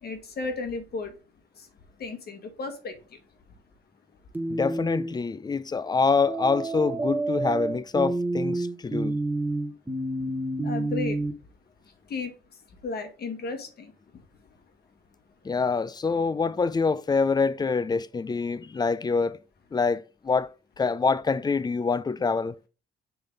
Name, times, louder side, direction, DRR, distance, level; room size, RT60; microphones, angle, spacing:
voice 1, 0.0-1.2 1.5-1.7 2.0-3.2 10.2-10.4 10.6-11.3 12.1-14.2, left 4 dB, 55° left, 1.6 m, -35 dB
sound 1, 4.3-5.2 6.3-11.3, right 2 dB, 10° right, 1.3 m, -29 dB
voice 2, 4.5-9.2 15.4-19.4 19.7-20.5 20.8-22.6, left 4 dB, 20° left, 0.4 m, -25 dB
6.7 x 3.9 x 3.9 m
cardioid pair, 90°, 20 cm